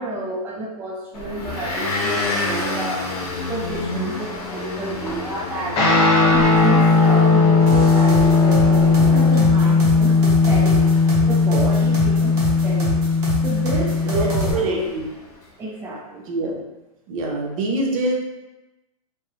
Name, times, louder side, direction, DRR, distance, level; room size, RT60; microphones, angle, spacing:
voice 1, 0.0-10.9 11.2-12.4 12.6-13.1 13.4-14.9 15.6-16.2, right 1 dB, 10° right, -4 dB, 0.3 m, -29 dB
Motor vehicle (road) / Engine, 1.1-15.4, left 2 dB, 85° left, 0.8 m, -31 dB
Guitar, 5.8-14.6, left 4 dB, 30° left, 0.9 m, -17 dB
sound 1, 7.7-14.5, right 2 dB, 45° right, 1.0 m, -26 dB
voice 2, 14.1-15.1 16.3-16.6 17.1-18.1, right 2 dB, 60° right, -1 dB, 0.7 m, -24 dB
2.6 x 2.0 x 2.5 m, 1.0 s
hypercardioid pair, 120°, 19 cm